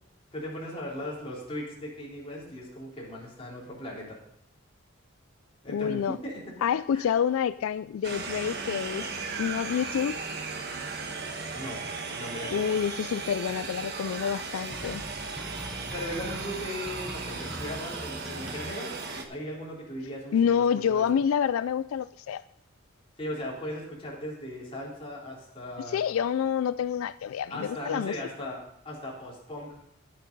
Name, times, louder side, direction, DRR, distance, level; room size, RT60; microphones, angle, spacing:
voice 1, 0.3-4.2 5.6-6.5 6.9-7.1 11.5-12.8 15.9-21.2 23.2-26.0 27.5-29.8, left 1 dB, 25° left, -4 dB, 3.6 m, -38 dB
voice 2, 5.7-6.2 6.6-10.2 12.5-15.0 20.3-22.4 25.9-28.1, left 8 dB, 80° left, 15 dB, 0.3 m, -28 dB
sound 1, 8.0-19.2, right 4 dB, 55° right, 1.2 m, -36 dB
sound 2, 14.7-18.7, equal, 5° right, 0.7 m, -41 dB
11.5 x 8.5 x 5.2 m, 0.70 s
head